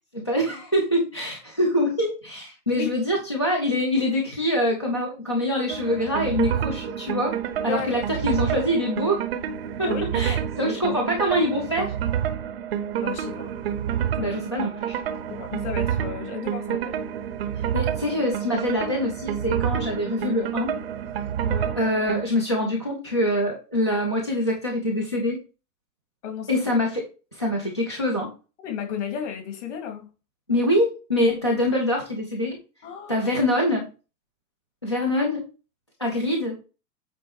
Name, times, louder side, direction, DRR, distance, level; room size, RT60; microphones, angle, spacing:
voice 1, 0.1-7.4 7.6-9.2 9.8-9.9 10.1-11.9 14.2-15.0 17.6-20.8 21.8-25.4 26.5-27.0 27.3-28.3 30.5-32.6 33.1-33.9 34.8-35.4 36.0-36.6, left 1 dB, 20° left, 0.4 m, -24 dB
sound 1, 5.7-22.3, right 9 dB, 40° right, 0.7 m, -28 dB
voice 2, 9.8-10.2 10.6-10.8 13.0-13.5 14.2-14.4 15.3-17.0 21.4-21.7 26.2-26.5 28.6-30.1 32.8-33.3, left 7 dB, 45° left, 2.3 m, -33 dB
8.5 x 4.0 x 4.6 m
hypercardioid pair, 170°, 49 cm